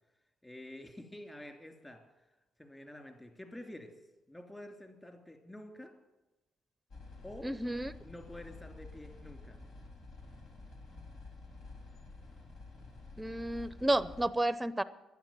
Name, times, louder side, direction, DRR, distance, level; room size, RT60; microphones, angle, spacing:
voice 1, 0.4-2.0 2.6-3.9 4.3-5.9 7.2-7.5 8.0-9.6 13.7-13.8, left 1 dB, 15° left, 4 dB, 3.0 m, -48 dB
sound 1, 6.9-14.3, left 3 dB, 70° left, 3.7 m, -50 dB
voice 2, 7.4-7.9 13.2-14.8, right 1 dB, 10° right, 15 dB, 0.7 m, -31 dB
11.5 x 10.0 x 9.0 m, 1.0 s
cardioid pair, 90°, 0 cm